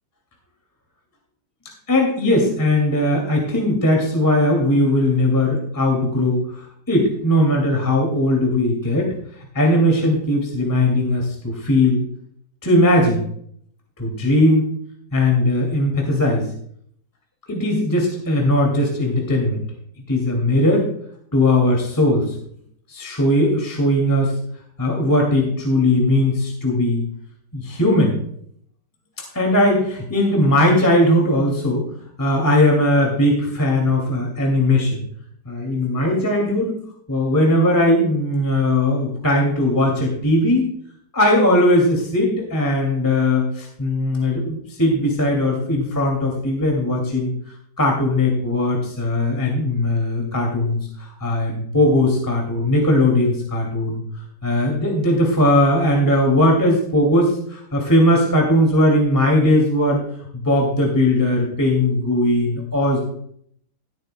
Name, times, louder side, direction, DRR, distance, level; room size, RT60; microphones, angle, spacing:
voice 1, 1.9-9.1 9.5-12.1 12.6-13.2 14.0-14.7 15.1-16.5 17.5-19.6 20.1-20.9 21.3-22.3 22.9-24.3 24.8-27.0 27.5-28.1 29.3-31.8 32.2-35.0 35.5-36.8 37.1-40.7 41.1-47.3 47.8-54.0 54.4-60.0 60.4-63.0, left 1 dB, 10° left, 0 dB, 2.3 m, -18 dB
17.5 x 9.0 x 2.2 m, 0.66 s
omnidirectional pair, 1.9 m